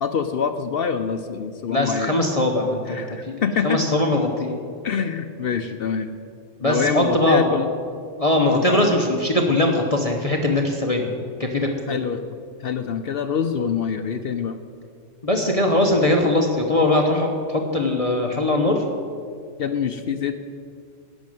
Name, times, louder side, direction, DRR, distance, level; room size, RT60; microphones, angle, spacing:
voice 1, 0.0-2.2 2.9-3.8 4.8-6.1 6.6-7.7 11.9-12.2 12.6-14.6 19.6-20.4, left 6 dB, 60° left, 8 dB, 0.6 m, -25 dB
voice 2, 1.7-4.6 6.6-7.5 8.2-11.1 11.4-12.0 15.2-18.8, left 1 dB, 30° left, 2 dB, 0.9 m, -21 dB
11.5 x 6.4 x 9.1 m, 2.2 s
omnidirectional pair, 1.4 m